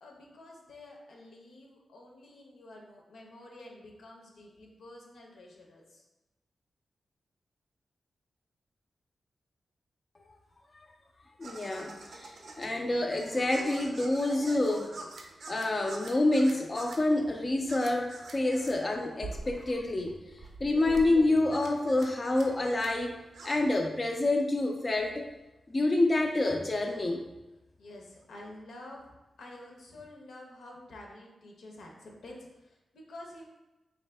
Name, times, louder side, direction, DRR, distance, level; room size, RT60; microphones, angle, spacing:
voice 1, 0.0-6.0 27.8-29.1 29.4-33.4, left 1 dB, 90° left, 0 dB, 0.7 m, -49 dB
voice 2, 11.4-14.9 15.5-20.1 20.6-23.2 23.4-25.3 25.7-27.3, left 2 dB, 35° left, 2 dB, 0.3 m, -28 dB
sound 1, 11.4-23.7, right 3 dB, 80° right, 0.5 m, -46 dB
4.0 x 2.6 x 3.3 m, 1.0 s
wide cardioid pair, 95°, 0 cm